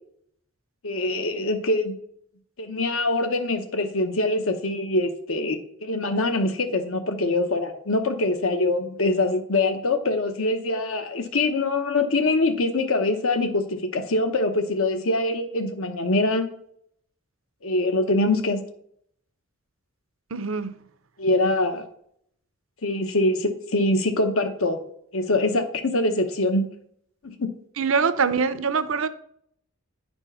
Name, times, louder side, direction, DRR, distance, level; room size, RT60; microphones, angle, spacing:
voice 1, 0.8-1.9 2.6-16.5 17.6-18.6 21.2-21.9 22.8-24.8 25.1-26.7 27.2-27.5, left 2 dB, 70° left, 1.0 m, -24 dB
voice 2, 20.3-20.8 27.8-29.1, right 5 dB, 65° right, 0.6 m, -24 dB
9.9 x 4.5 x 5.5 m
head